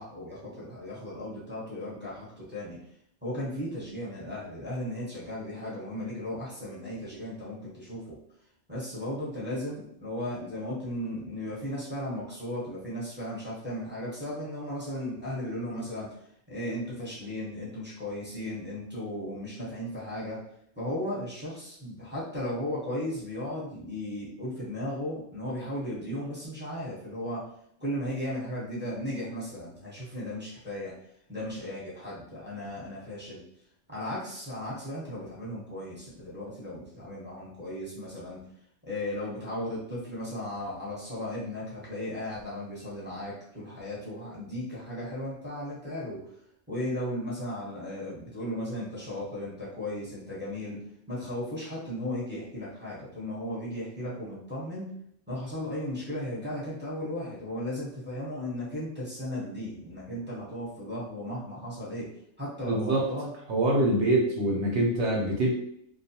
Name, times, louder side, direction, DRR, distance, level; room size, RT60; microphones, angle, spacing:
voice 1, 0.0-2.8 3.2-8.1 8.7-16.1 16.5-20.4 20.8-27.4 27.8-30.9 31.3-33.4 33.9-38.4 38.8-46.2 46.7-50.8 51.1-54.9 55.3-62.0 62.4-63.3, left 1 dB, 10° right, -8 dB, 0.7 m, -36 dB
voice 2, 62.7-63.1 63.5-65.5, right 1 dB, 65° right, -1 dB, 0.8 m, -24 dB
2.4 x 2.2 x 2.7 m, 0.69 s
omnidirectional pair, 1.4 m